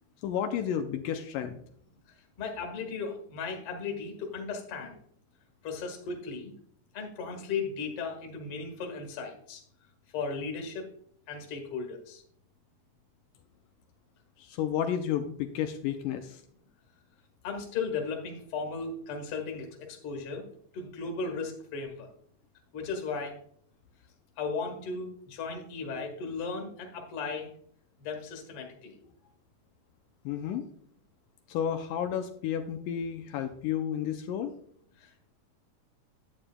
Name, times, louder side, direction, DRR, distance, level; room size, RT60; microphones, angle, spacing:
voice 1, 0.2-1.6 14.4-16.4 30.3-30.7 31.5-34.5, left 9 dB, 80° left, 6 dB, 2.2 m, -31 dB
voice 2, 2.4-5.0 5.6-6.5 6.9-9.6 10.1-10.8 11.3-12.2 17.4-20.4 20.7-22.1 22.7-23.3 24.4-27.5 28.0-28.9 35.0-35.3, left 4 dB, 50° left, 3 dB, 2.1 m, -36 dB
11.0 x 8.7 x 2.2 m, 0.63 s
omnidirectional pair, 3.8 m